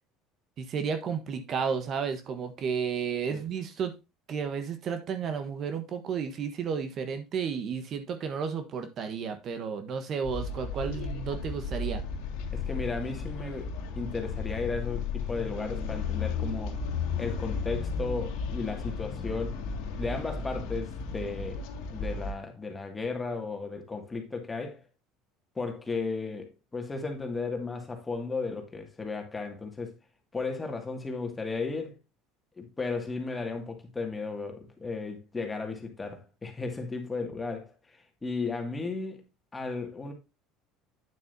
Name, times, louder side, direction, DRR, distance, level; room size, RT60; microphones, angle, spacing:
voice 1, 0.6-4.0 4.3-12.0, right 6 dB, 45° right, 1.3 m, -32 dB
sound 1, 10.2-22.3, left 4 dB, 75° left, 2.0 m, -34 dB
voice 2, 12.5-16.8 17.2-19.6 20.0-21.6 21.9-24.8 25.6-29.9 30.3-32.0 32.6-37.7 38.2-39.2 39.5-40.1, left 4 dB, 15° left, 2.2 m, -35 dB
8.9 x 7.3 x 2.8 m
supercardioid pair, 105°, 0 cm